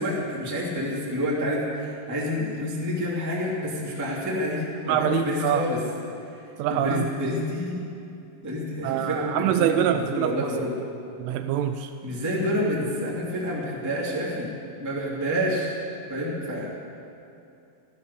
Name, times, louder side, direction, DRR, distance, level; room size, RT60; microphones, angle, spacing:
voice 1, 0.0-5.8 6.7-7.8 8.4-10.7 12.0-14.5 14.8-15.7 16.1-16.7, equal, 10° right, -6 dB, 1.2 m, -28 dB
voice 2, 4.9-5.7 6.6-7.1 8.8-10.5 11.2-11.9, right 10 dB, 85° right, 8 dB, 2.9 m, -25 dB
14.0 x 13.0 x 6.8 m, 2.6 s
omnidirectional pair, 5.8 m